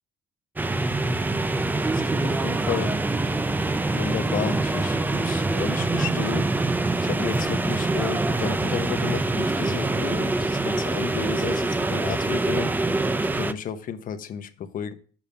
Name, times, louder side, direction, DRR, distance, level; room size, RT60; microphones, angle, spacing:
sound 1, 0.6-13.5, right 2 dB, 10° right, 0.4 m, -25 dB
voice 1, 1.7-2.9 3.9-6.5 7.0-13.0 13.3-14.9, left 8 dB, 55° left, 9 dB, 0.9 m, -33 dB
7.2 x 5.2 x 5.3 m, 0.42 s
cardioid pair, 110°, 17 cm